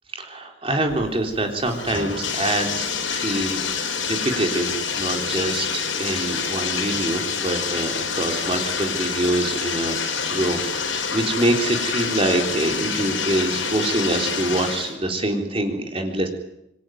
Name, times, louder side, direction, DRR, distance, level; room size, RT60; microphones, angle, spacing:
voice 1, 0.1-16.3, right 1 dB, 30° right, 3 dB, 3.8 m, -25 dB
Bathtub (filling or washing), 0.9-14.9, left 6 dB, 75° left, 6.2 m, -27 dB
27.0 x 22.0 x 9.3 m, 0.85 s
head